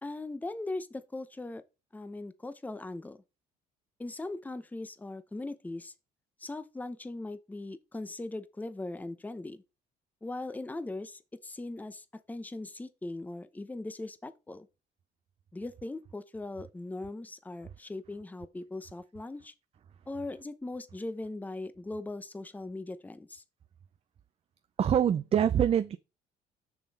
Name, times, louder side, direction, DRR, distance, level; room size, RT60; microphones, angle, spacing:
voice 1, 0.0-1.6 1.9-3.2 4.0-5.9 6.4-9.6 10.2-14.7 15.5-19.5 20.1-23.4, left 2 dB, 10° left, 0.8 m, -39 dB
voice 2, 24.8-26.0, right 9 dB, 35° right, 0.5 m, -24 dB
6.9 x 6.0 x 4.2 m
cardioid pair, 110°, 17 cm